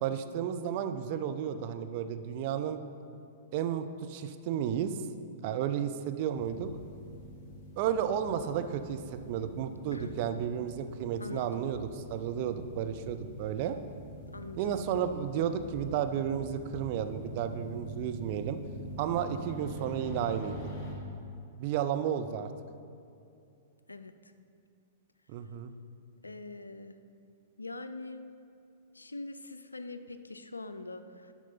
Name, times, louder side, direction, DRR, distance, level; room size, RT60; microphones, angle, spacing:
voice 1, 0.0-2.8 3.5-5.0 5.4-6.7 7.8-13.8 14.6-18.6 19.0-20.7 21.6-22.5 25.3-25.7, right 9 dB, 40° right, 8 dB, 0.5 m, -32 dB
sound 1, 6.3-20.9, equal, 25° left, 1.9 m, -45 dB
voice 2, 11.2-11.5 14.3-14.8 23.9-24.3 26.2-27.0 27.6-28.2 28.9-31.3, left 3 dB, 80° left, 10 dB, 0.4 m, -43 dB
10.5 x 6.0 x 4.1 m, 2.5 s
figure-of-eight pair, 105°, 0 cm